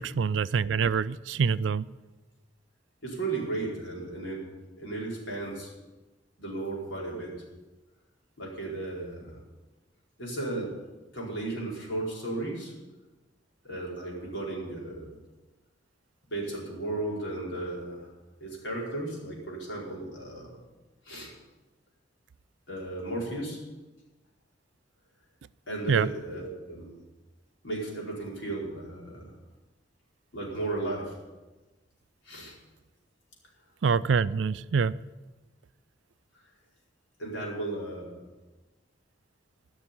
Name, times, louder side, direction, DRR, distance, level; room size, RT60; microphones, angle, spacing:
voice 1, 0.0-1.8 25.9-26.1 33.8-34.9, right 5 dB, 75° right, 16 dB, 0.4 m, -25 dB
voice 2, 3.0-4.5 4.8-5.7 6.4-7.4 8.4-9.4 10.2-10.8 11.1-12.7 13.6-15.1 16.3-18.1 18.4-20.6 21.0-21.3 22.7-23.6 25.7-27.0 27.6-29.3 30.3-31.2 32.2-32.5 37.2-38.2, right 2 dB, 80° left, -3 dB, 4.6 m, -35 dB
15.0 x 6.3 x 9.8 m, 1.2 s
head